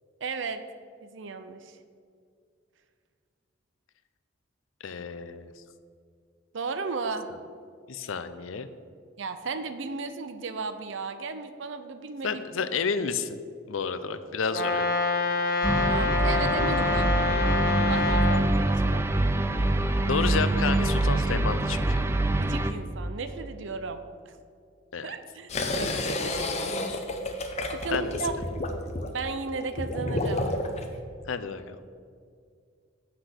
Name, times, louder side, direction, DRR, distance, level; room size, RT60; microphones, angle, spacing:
voice 1, 0.2-0.6 1.0-1.8 6.5-7.3 9.2-12.7 15.8-17.1 17.9-19.1 22.1-24.0 24.3-24.4 25.0-26.7 27.7-28.3 29.1-30.4, right 4 dB, 65° right, 9 dB, 0.5 m, -35 dB
voice 2, 4.8-5.5 7.9-8.7 12.2-13.4 13.7-14.9 20.0-22.0 24.9-25.1 27.9-28.1 31.3-31.8, left 5 dB, 85° left, 11 dB, 0.6 m, -30 dB
Brass instrument, 14.5-18.5, left 3 dB, 50° left, 1.2 m, -26 dB
sound 1, 15.6-22.7, right 2 dB, 10° right, 0.3 m, -25 dB
sound 2, 25.5-30.9, left 2 dB, 35° left, 0.7 m, -31 dB
8.0 x 5.8 x 6.6 m, 2.2 s
head